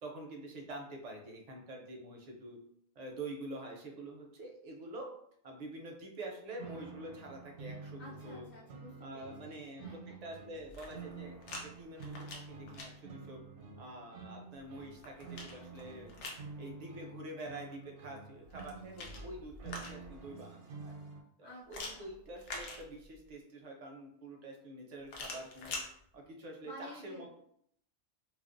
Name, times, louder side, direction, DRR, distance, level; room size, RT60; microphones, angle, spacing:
voice 1, 0.0-2.6 3.0-5.1 5.4-8.5 9.0-13.4 13.8-16.1 16.6-20.9 21.4-25.8 26.1-27.5, right 1 dB, 55° right, 1 dB, 0.4 m, -47 dB
sound 1, 6.6-21.2, right 4 dB, 80° right, 0.9 m, -49 dB
voice 2, 8.0-10.2 21.4-21.7 21.9-22.1 26.6-27.2, left 1 dB, 50° left, -7 dB, 0.7 m, -52 dB
sound 2, 10.6-11.6 12.0-12.9 14.6-16.5 18.4-20.2 21.7-23.3 25.1-25.9, left 3 dB, 85° left, 0.9 m, -45 dB
2.4 x 2.0 x 2.4 m, 0.68 s
omnidirectional pair, 1.2 m